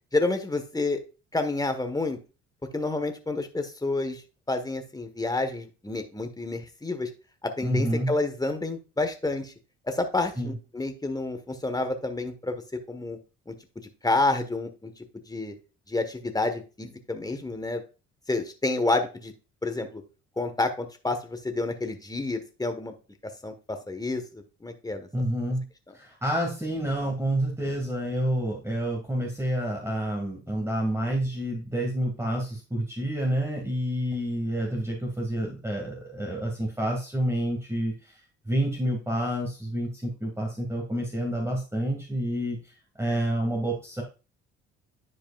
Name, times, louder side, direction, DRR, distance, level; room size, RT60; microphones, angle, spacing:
voice 1, 0.1-1.0 1.3-2.2 2.7-4.2 4.5-7.1 7.4-9.5 9.9-12.6 12.9-13.2 13.5-13.6 14.0-14.9 15.3-15.5 15.9-17.8 18.3-19.3 19.6-20.0 20.4-22.9 23.4-25.1, left 2 dB, 10° left, 7 dB, 1.4 m, -29 dB
voice 2, 7.6-8.1 10.4-10.5 25.1-25.6 25.9-38.2 38.5-44.0, right 1 dB, 10° right, -1 dB, 2.2 m, -28 dB
10.5 x 4.8 x 2.5 m, 0.32 s
hypercardioid pair, 55°, 35 cm